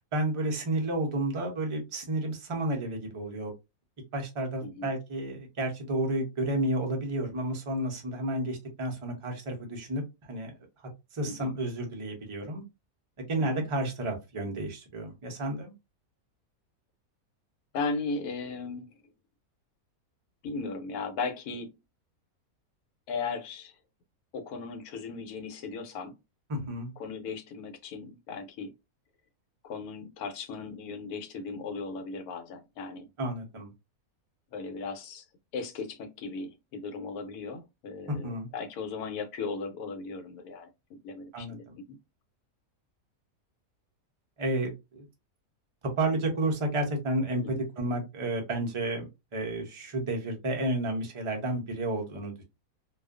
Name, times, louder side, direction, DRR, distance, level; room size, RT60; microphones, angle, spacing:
voice 1, 0.1-3.5 4.1-10.5 11.1-12.6 13.3-15.7 26.5-26.9 33.2-33.7 38.1-38.5 41.3-41.7 44.4-45.0 46.0-52.4, right 1 dB, 45° right, 0.4 m, -31 dB
voice 2, 4.6-4.9 11.3-11.5 13.4-13.6 17.7-18.9 20.4-21.7 23.1-23.7 24.3-26.1 27.0-28.7 29.6-33.1 34.5-35.2 35.5-41.8 47.4-47.6, left 4 dB, 85° left, 1.1 m, -37 dB
2.4 x 2.3 x 2.3 m
omnidirectional pair, 1.6 m